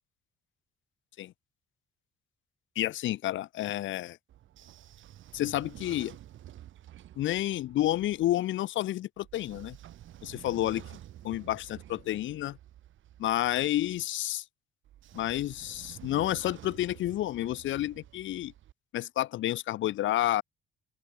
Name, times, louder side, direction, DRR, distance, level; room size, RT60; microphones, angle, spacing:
voice 1, 2.8-4.2 5.3-6.2 7.2-9.8 10.2-11.0 11.2-12.6 13.2-14.4 15.1-18.5 18.9-20.4, left 14 dB, 75° left, 0.7 m, -30 dB
Train / Sliding door, 4.3-8.3 9.2-14.0 14.8-18.7, right 12 dB, 75° right, 3.5 m, -50 dB
open air
cardioid pair, 90°, 20 cm